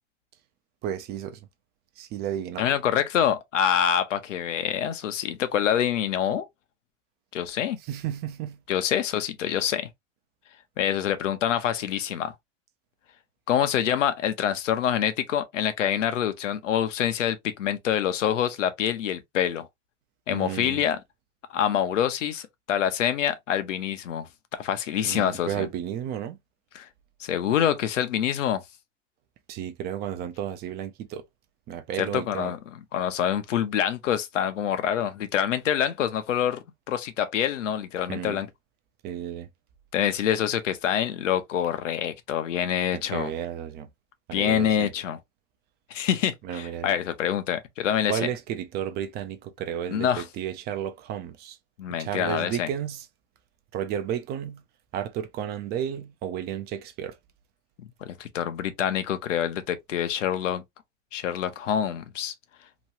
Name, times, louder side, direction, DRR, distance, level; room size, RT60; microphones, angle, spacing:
voice 1, 0.8-1.5 2.0-2.6 7.8-8.6 20.3-20.9 25.0-26.4 29.5-31.2 31.7-32.5 38.1-38.4 39.0-39.5 42.9-43.9 44.3-44.9 46.4-47.0 48.1-51.6 52.0-53.1 53.7-54.6 54.9-57.2, right 9 dB, 30° right, 0.4 m, -32 dB
voice 2, 2.6-6.5 7.3-7.8 8.7-9.9 10.8-12.3 13.5-19.7 20.3-21.0 21.5-25.7 26.7-26.9 27.2-28.6 32.0-38.5 39.9-43.3 44.3-45.2 45.9-48.1 49.9-50.2 51.8-52.7 57.8-60.6 61.1-62.3, left 9 dB, 85° left, 0.7 m, -26 dB
3.0 x 2.3 x 2.7 m
hypercardioid pair, 115°, 36 cm